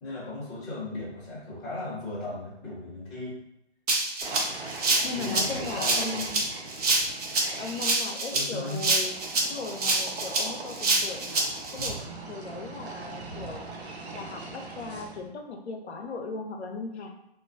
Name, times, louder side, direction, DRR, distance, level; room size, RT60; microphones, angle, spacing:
voice 1, 0.0-3.4 5.1-6.2 8.3-8.8, left 2 dB, 10° left, -11 dB, 0.6 m, -36 dB
Rattle (instrument), 3.9-11.9, right 3 dB, 40° right, 0.4 m, -26 dB
sound 1, 4.2-7.9 8.9-15.3, right 3 dB, 85° right, 0.6 m, -40 dB
voice 2, 5.0-6.4 7.6-9.1 9.4-11.4 11.7-12.0 12.3-13.6 14.1-17.1, left 4 dB, 85° left, 3 dB, 0.6 m, -37 dB
2.4 x 2.2 x 2.4 m, 0.82 s
hypercardioid pair, 150°, 32 cm